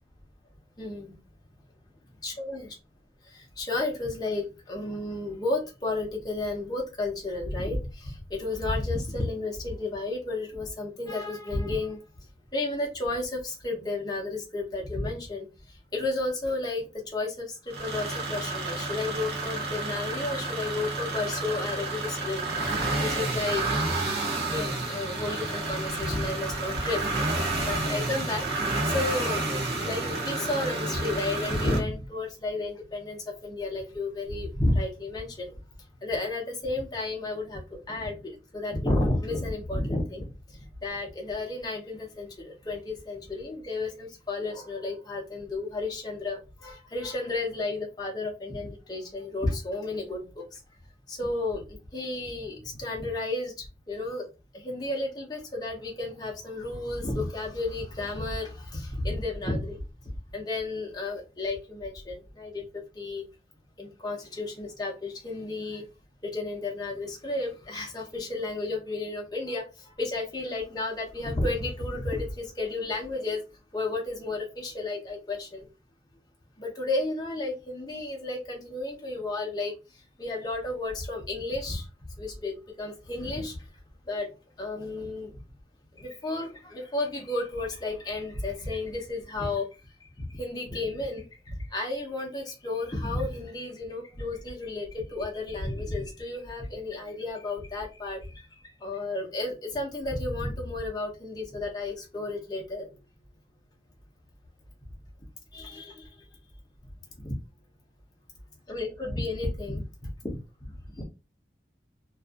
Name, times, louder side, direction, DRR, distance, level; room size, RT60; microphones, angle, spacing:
voice 1, 0.8-1.2 2.2-2.7 3.6-12.0 12.5-15.4 15.9-22.4 23.0-23.6 24.4-28.4 28.9-29.4 29.8-35.5 36.0-37.6 37.9-40.3 40.8-50.4 51.1-53.5 53.9-54.2 54.5-59.8 60.3-62.6 63.0-63.2 63.8-65.8 66.2-69.6 70.0-73.4 73.7-75.7 76.6-79.7 80.2-81.8 82.2-83.6 84.1-84.3 84.6-85.3 86.0-89.7 90.2-98.2 98.8-102.9 105.5-106.0 107.2-107.3 108.7-109.8 110.2-110.4 111.0-111.1, left 2 dB, 20° left, 0 dB, 0.7 m, -32 dB
sound 1, 17.7-31.8, right 2 dB, 55° right, 0.8 m, -30 dB
2.5 x 2.3 x 2.3 m, 0.28 s
head